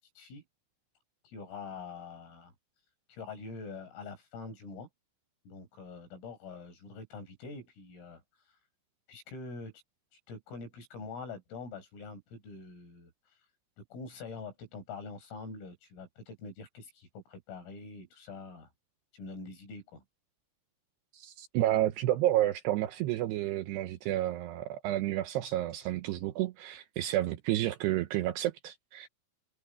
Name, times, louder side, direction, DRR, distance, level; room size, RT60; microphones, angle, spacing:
voice 1, 1.3-2.5 3.1-4.9 5.5-8.2 9.1-9.7 10.3-13.1 13.8-18.7 19.1-20.0, left 4 dB, 90° left, 10.5 m, -45 dB
voice 2, 21.1-29.1, right 14 dB, 80° right, 2.5 m, -30 dB
omnidirectional pair, 5.8 m